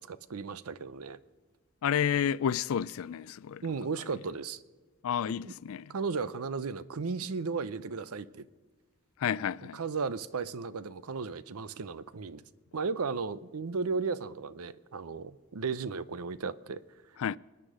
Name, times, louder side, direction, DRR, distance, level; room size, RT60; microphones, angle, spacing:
voice 1, 0.1-1.2 3.6-4.6 5.4-5.5 5.9-8.4 9.7-12.4 12.7-16.8, right 4 dB, 85° right, 0.6 m, -35 dB
voice 2, 1.8-3.6 5.0-5.9 9.2-9.8 17.2-17.4, left 8 dB, 75° left, 0.4 m, -30 dB
25.0 x 9.8 x 5.0 m
head